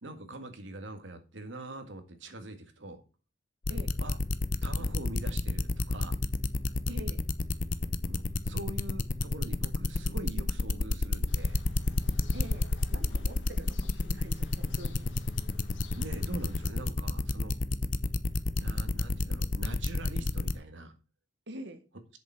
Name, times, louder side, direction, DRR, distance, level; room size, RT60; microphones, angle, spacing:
voice 1, 0.0-3.0 4.0-4.2 4.6-6.2 8.1-11.6 15.9-17.5 18.5-20.9, right 1 dB, 85° right, 7 dB, 1.9 m, -43 dB
sound 1, 3.6-20.5, left 2 dB, 45° left, 0.7 m, -29 dB
voice 2, 6.9-7.3 12.3-15.1 21.5-21.8, right 1 dB, 65° right, 8 dB, 1.7 m, -45 dB
sound 2, 11.3-16.7, left 2 dB, 75° left, 1.5 m, -51 dB
8.1 x 6.9 x 5.6 m, 0.33 s
head